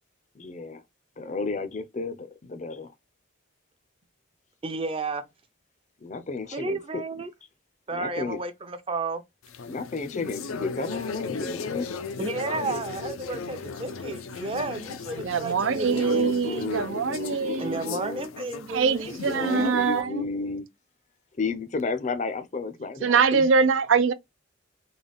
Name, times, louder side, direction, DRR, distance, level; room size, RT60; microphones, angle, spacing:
voice 1, 0.3-0.8 1.2-2.9 6.0-7.0 7.9-8.4 9.7-11.9 15.9-18.3 19.2-20.7 21.4-23.5, left 4 dB, 35° left, 0.5 m, -32 dB
voice 2, 4.6-5.2 6.5-7.3 7.9-9.2 12.2-16.3 17.6-20.0, right 3 dB, 25° right, 0.6 m, -32 dB
sound 1, 9.4-20.0, left 4 dB, 80° left, 0.5 m, -36 dB
voice 3, 15.2-17.8 18.7-20.2 23.0-24.1, right 5 dB, 70° right, 0.5 m, -23 dB
3.9 x 2.3 x 3.4 m
head